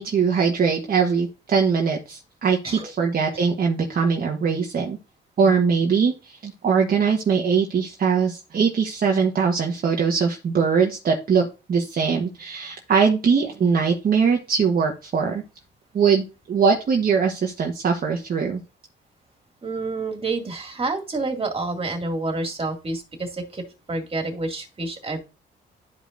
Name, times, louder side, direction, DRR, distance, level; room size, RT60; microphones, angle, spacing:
voice 1, 0.0-5.0 5.4-15.4 15.9-18.6, right 6 dB, 45° right, 2 dB, 1.2 m, -21 dB
voice 2, 19.6-23.6 23.9-25.2, right 3 dB, 30° right, 3 dB, 2.3 m, -28 dB
12.0 x 5.2 x 2.6 m, 0.30 s
cardioid pair, 90°, 20 cm